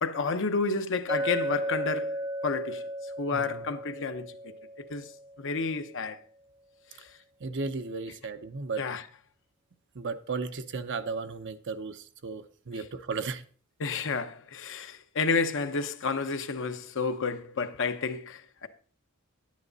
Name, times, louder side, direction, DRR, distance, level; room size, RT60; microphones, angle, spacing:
voice 1, 0.0-2.8 3.2-4.5 4.9-5.1 5.4-6.2 6.9-7.1 8.8-9.0 13.8-18.7, left 4 dB, 60° left, 0.9 m, -31 dB
Chink clink, 1.1-5.5, right 1 dB, 15° right, 0.8 m, -34 dB
voice 2, 3.3-3.7 7.4-8.8 9.9-13.4, right 4 dB, 55° right, 0.8 m, -35 dB
10.0 x 9.5 x 4.0 m
head